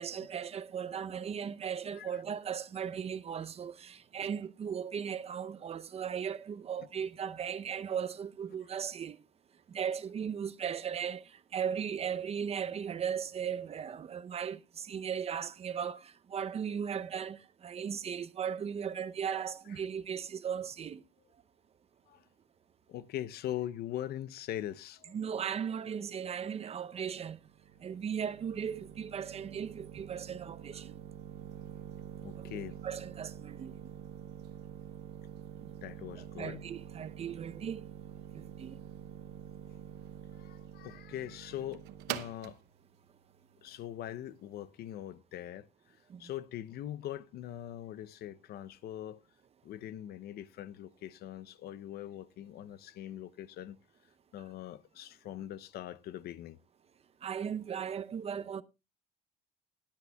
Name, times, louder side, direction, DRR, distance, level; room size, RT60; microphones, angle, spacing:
voice 1, 0.0-9.2 9.7-11.2 11.5-21.0 25.1-27.4 27.8-30.9 32.4-32.5 32.8-33.7 36.2-37.8 38.3-38.7 46.1-46.2 57.2-58.6, right 7 dB, 35° right, 0.6 m, -37 dB
voice 2, 22.9-25.2 32.2-32.8 35.8-36.6 40.4-42.6 43.6-49.2 49.6-53.8 54.3-56.6, left 12 dB, 70° left, 0.6 m, -42 dB
sound 1, 27.1-44.6, right 10 dB, 90° right, 0.8 m, -46 dB
21.0 x 8.4 x 2.2 m
cardioid pair, 110°, 17 cm